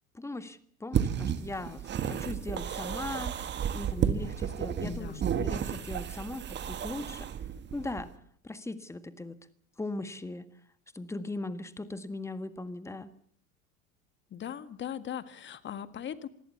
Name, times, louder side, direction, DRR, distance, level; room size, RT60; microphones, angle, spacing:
voice 1, 0.1-3.4 3.7-7.3 7.7-8.1 8.4-9.4 9.8-10.5 10.9-13.1, left 2 dB, 5° left, 12 dB, 1.6 m, -39 dB
sound 1, 0.9-8.1, right 8 dB, 25° right, 1.8 m, -32 dB
voice 2, 4.8-5.2 14.3-16.3, left 9 dB, 25° left, 12 dB, 1.8 m, -39 dB
25.5 x 20.5 x 7.0 m, 0.63 s
figure-of-eight pair, 80°, 41 cm